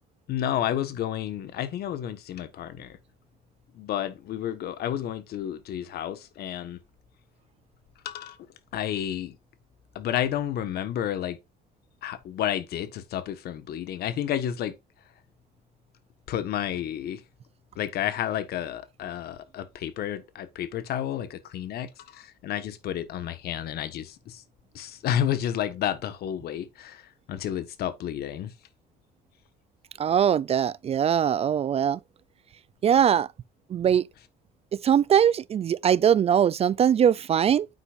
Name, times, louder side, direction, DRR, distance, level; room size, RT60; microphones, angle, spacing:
voice 1, 0.3-3.0 3.7-6.8 8.0-8.4 8.7-9.4 9.9-11.4 12.0-14.8 16.3-17.2 17.7-24.4 24.7-28.5, left 10 dB, 70° left, 1.5 m, -31 dB
voice 2, 30.0-32.0 32.8-33.3 33.7-34.0 34.8-37.7, right 9 dB, 35° right, 0.4 m, -21 dB
9.6 x 8.2 x 2.6 m
cardioid pair, 110°, 17 cm